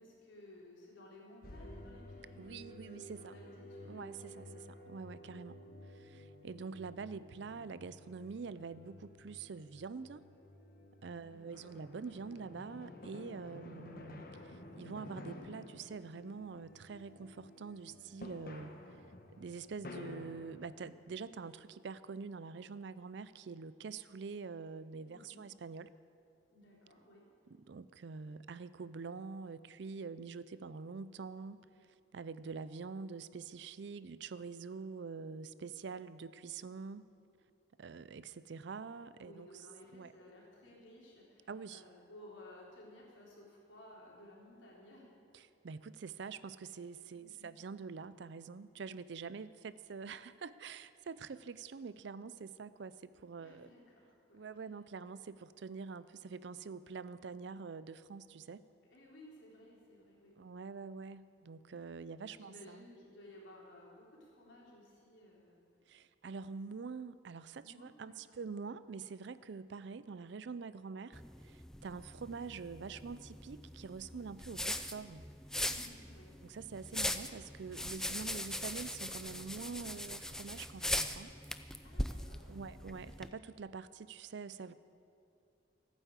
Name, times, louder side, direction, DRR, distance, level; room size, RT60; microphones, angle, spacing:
voice 1, 0.0-2.5 2.9-4.7 11.2-11.7 25.0-25.4 26.5-27.3 39.2-45.1 45.4-45.5 47.1-47.5 53.4-54.5 58.9-60.3 62.3-65.6 67.6-68.4 75.6-76.4 81.8-82.6, left 1 dB, 75° left, -3 dB, 3.8 m, -57 dB
sound 1, 1.4-21.3, left 1 dB, 45° left, 1.2 m, -52 dB
voice 2, 2.4-3.3 3.9-5.6 5.9-10.2 11.0-18.7 19.4-25.9 27.5-31.7 32.1-37.1 37.8-39.6 39.9-40.1 41.5-41.8 45.3-53.7 54.3-58.6 60.4-62.9 65.9-75.3 76.4-81.3 82.5-84.7, right 5 dB, 65° right, 15 dB, 0.4 m, -46 dB
sound 2, 71.1-83.3, left 1 dB, 5° left, 0.4 m, -40 dB
15.0 x 9.3 x 8.1 m, 2.6 s
head